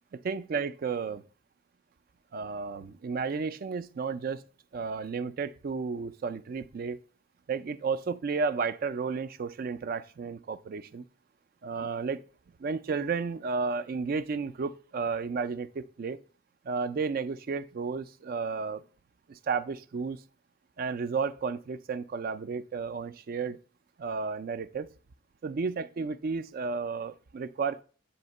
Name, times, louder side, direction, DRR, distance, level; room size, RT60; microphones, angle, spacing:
voice 1, 0.1-1.2 2.3-4.4 4.7-7.0 7.5-11.1 11.6-12.2 12.6-16.2 16.6-18.8 19.3-20.2 20.8-23.6 24.0-24.9 25.4-27.8, right 5 dB, 45° right, 0.3 m, -32 dB
8.4 x 2.8 x 5.2 m
head